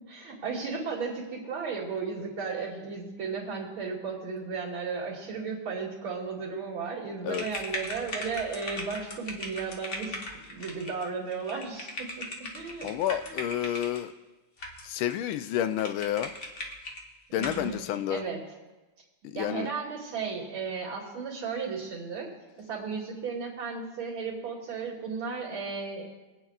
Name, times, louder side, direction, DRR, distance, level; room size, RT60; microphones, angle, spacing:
voice 1, 0.1-10.2 10.5-12.3 12.5-13.0 13.3-13.8 17.3-18.4 19.3-22.3 22.7-26.1, right 5 dB, 75° right, -6 dB, 3.3 m, -35 dB
sound 1, 7.3-14.0 14.6-15.1 15.4-15.5 15.8-17.0 17.4-17.6, left 1 dB, 40° left, 1.5 m, -39 dB
voice 2, 12.8-14.1 14.8-16.3 17.3-18.2 19.2-19.7, left 11 dB, 85° left, 11 dB, 1.4 m, -30 dB
25.5 x 9.1 x 2.4 m, 1.1 s
omnidirectional pair, 2.2 m